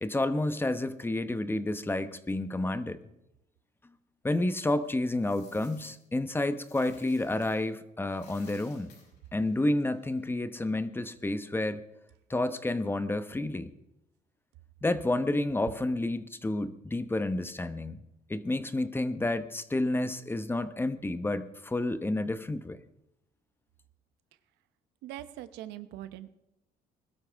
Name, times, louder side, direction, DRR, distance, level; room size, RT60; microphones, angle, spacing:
voice 1, 0.0-3.0 4.2-8.9 9.3-11.8 12.3-13.7 14.8-18.0 18.3-22.8, left 2 dB, 15° left, 11 dB, 1.0 m, -30 dB
Coin (dropping), 4.8-7.7 8.0-10.3, left 5 dB, 80° left, 6.1 m, -59 dB
voice 2, 25.0-26.3, right 13 dB, 90° right, 12 dB, 0.9 m, -42 dB
21.0 x 13.0 x 3.5 m, 0.88 s
cardioid pair, 110°, 17 cm